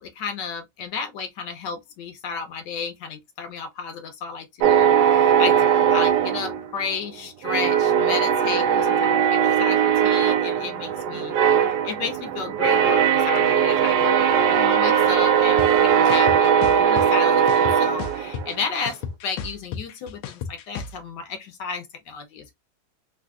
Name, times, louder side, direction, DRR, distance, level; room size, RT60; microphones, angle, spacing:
voice 1, 0.0-19.0 19.2-22.5, left 5 dB, 70° left, 1.4 m, -33 dB
sound 1, 4.6-7.1 7.4-18.7, right 8 dB, 70° right, 1.0 m, -19 dB
sound 2, 15.6-15.7 16.1-17.1 17.5-18.6 18.9-20.9, left 6 dB, 90° left, 1.4 m, -32 dB
3.6 x 2.6 x 2.3 m
omnidirectional pair, 2.1 m